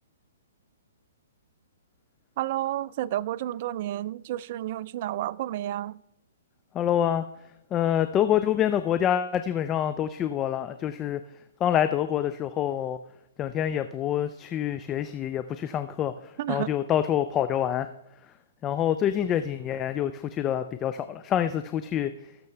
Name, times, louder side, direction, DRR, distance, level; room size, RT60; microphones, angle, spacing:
voice 1, 2.4-6.0 16.4-16.7, right 13 dB, 45° right, 0.3 m, -31 dB
voice 2, 6.7-7.3 7.7-11.2 11.6-13.0 13.4-17.9 18.6-22.1, left 10 dB, 25° left, 0.4 m, -26 dB
19.5 x 6.7 x 3.4 m
hypercardioid pair, 140°, 0 cm